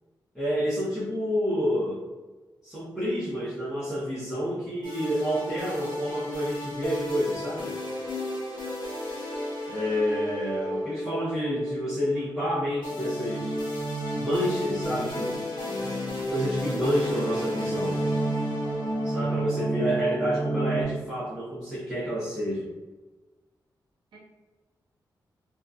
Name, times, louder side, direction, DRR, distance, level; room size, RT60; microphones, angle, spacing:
voice 1, 0.3-2.0 2.6-7.8 9.7-13.6 14.1-15.4 16.3-18.0 19.0-22.7, equal, 5° right, -11 dB, 0.7 m, -29 dB
sound 1, 4.8-20.8, equal, 85° left, 0.8 m, -31 dB
voice 2, 19.3-19.5 19.9-20.1 24.1-24.2, right 1 dB, 85° right, -5 dB, 0.8 m, -50 dB
2.7 x 2.4 x 2.3 m, 1.2 s
wide cardioid pair, 155°, 8 cm